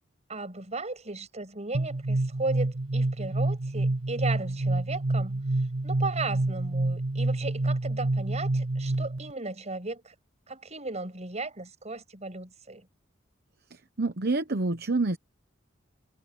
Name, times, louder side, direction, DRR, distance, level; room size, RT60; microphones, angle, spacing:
voice 1, 0.3-5.4 5.8-10.1 10.5-12.9, right 3 dB, 35° right, 7.0 m, -36 dB
sound 1, 1.7-9.3, right 2 dB, 75° right, 1.7 m, -28 dB
voice 2, 14.0-15.2, right 3 dB, 50° right, 1.0 m, -27 dB
head